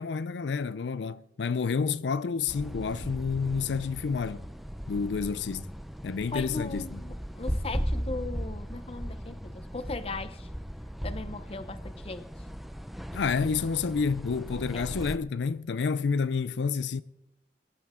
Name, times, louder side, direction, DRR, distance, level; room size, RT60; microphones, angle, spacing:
voice 1, 0.0-4.4 4.9-5.7 6.0-7.0 13.1-17.0, left 5 dB, 90° left, 0.5 m, -29 dB
sound 1, 2.5-15.2, equal, ahead, 0.5 m, -37 dB
voice 2, 6.3-10.5 11.0-11.8 12.0-12.3 14.7-14.9, left 3 dB, 35° left, 0.8 m, -38 dB
23.5 x 11.0 x 3.7 m
head